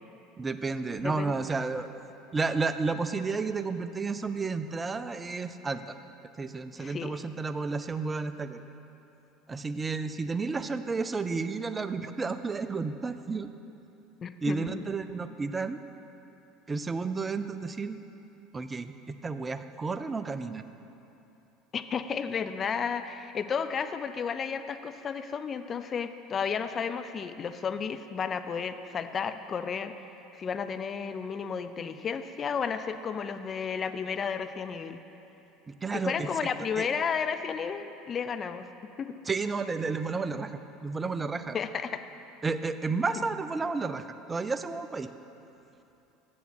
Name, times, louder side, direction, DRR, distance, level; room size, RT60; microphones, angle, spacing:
voice 1, 0.4-1.9 2.3-6.0 6.4-8.6 9.5-13.5 14.4-15.8 16.7-18.0 18.5-20.6 35.7-36.5 36.8-36.9 39.3-41.6 42.4-45.1, right 4 dB, 20° right, 11 dB, 0.5 m, -32 dB
voice 2, 1.0-1.4 6.8-7.2 14.2-14.8 21.7-29.9 30.4-35.0 35.9-38.7 39.0-39.1 41.5-42.0, left 6 dB, 35° left, 10 dB, 0.4 m, -32 dB
7.1 x 7.1 x 6.4 m, 3.0 s
hypercardioid pair, 75°, 0 cm